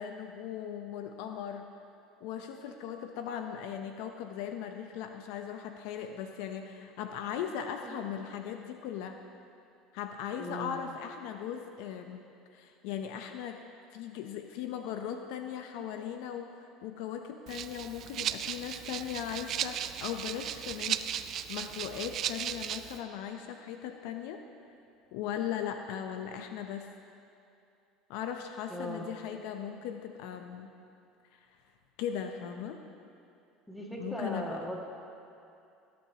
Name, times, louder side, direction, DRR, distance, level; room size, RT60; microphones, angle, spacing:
voice 1, 0.0-1.7 2.2-9.2 9.9-12.2 12.5-13.6 13.9-24.4 25.1-26.9 28.1-30.7 31.4-31.5 32.0-32.8 34.0-34.6, left 9 dB, 75° left, 6 dB, 0.6 m, -38 dB
voice 2, 10.4-10.8 28.7-29.1 32.3-32.6 33.7-34.8, equal, 5° left, -2 dB, 1.9 m, -39 dB
Rattle (instrument), 17.5-23.0, right 10 dB, 50° right, 0.3 m, -36 dB
17.0 x 8.7 x 2.9 m, 2.6 s
supercardioid pair, 105°, 0 cm